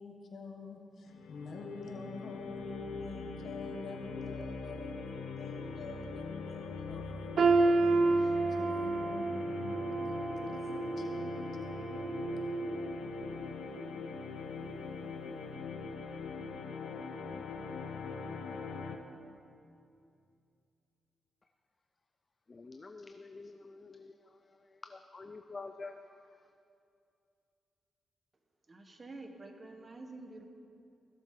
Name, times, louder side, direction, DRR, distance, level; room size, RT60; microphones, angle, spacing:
voice 1, 0.0-9.7 10.0-10.1 10.5-11.5, left 3 dB, 70° left, 2 dB, 1.3 m, -46 dB
sound 1, 1.1-19.0, left 4 dB, 90° left, 0.6 m, -42 dB
sound 2, 7.4-13.3 13.7-13.9 14.7-14.8, right 3 dB, 65° right, 0.6 m, -30 dB
voice 2, 22.5-26.5, left 3 dB, 40° left, 7 dB, 0.4 m, -48 dB
voice 3, 28.7-30.5, right 2 dB, 35° right, 4 dB, 1.2 m, -48 dB
16.0 x 7.5 x 3.8 m, 2.6 s
cardioid pair, 65°, 0 cm